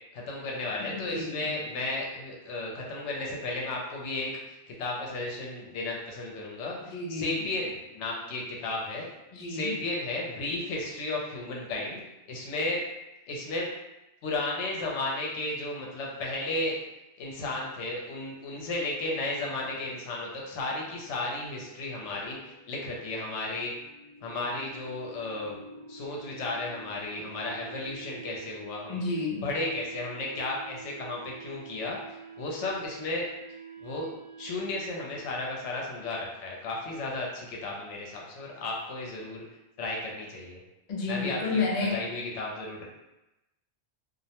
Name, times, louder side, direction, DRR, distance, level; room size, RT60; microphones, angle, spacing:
voice 1, 0.1-9.1 9.5-12.0 12.3-12.8 13.3-13.7 14.2-16.8 17.2-23.7 24.2-25.6 25.9-29.0 29.4-33.2 33.8-34.1 34.4-39.4 39.8-40.6 41.1-41.6 41.9-42.9, left 2 dB, 80° left, -2 dB, 0.9 m, -34 dB
voice 2, 0.8-1.5 6.9-7.5 9.3-9.7 28.9-29.4 40.9-42.0, left 3 dB, 50° left, -2 dB, 0.5 m, -31 dB
sound 1, 19.5-35.4, right 4 dB, 85° right, 0.9 m, -48 dB
2.4 x 2.1 x 2.8 m, 0.95 s
omnidirectional pair, 1.2 m